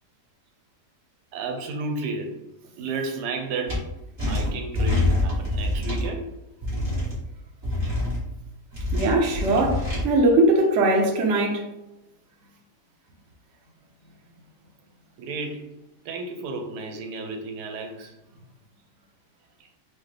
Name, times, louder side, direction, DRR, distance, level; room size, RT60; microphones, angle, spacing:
voice 1, 1.3-2.4 2.8-3.9 4.3-6.3 15.2-15.7 16.0-18.1, right 3 dB, 90° right, 1.2 m, -32 dB
sound 1, 3.7-3.8 4.2-6.1 6.6-7.1 7.6-8.2 8.7-10.0, left 2 dB, 40° right, 1.8 m, -25 dB
voice 2, 8.9-11.7, right 2 dB, 60° right, 0.9 m, -20 dB
4.8 x 2.1 x 3.2 m
omnidirectional pair, 1.7 m